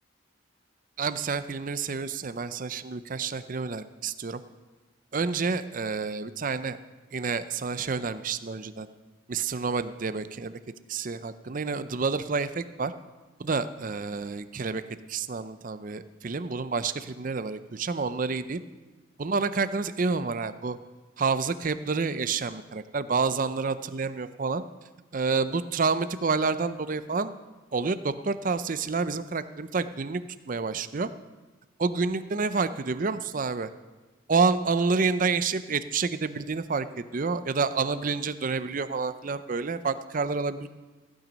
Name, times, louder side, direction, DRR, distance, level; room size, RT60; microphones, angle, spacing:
voice 1, 1.0-4.4 5.1-6.8 7.1-8.9 9.3-10.6 10.9-12.9 13.4-14.8 15.1-18.6 19.2-20.8 21.2-24.6 25.1-27.3 27.7-30.2 30.5-31.1 31.8-33.7 34.3-40.7, right 4 dB, 40° right, 12 dB, 0.5 m, -29 dB
15.5 x 9.0 x 5.2 m, 1.2 s
head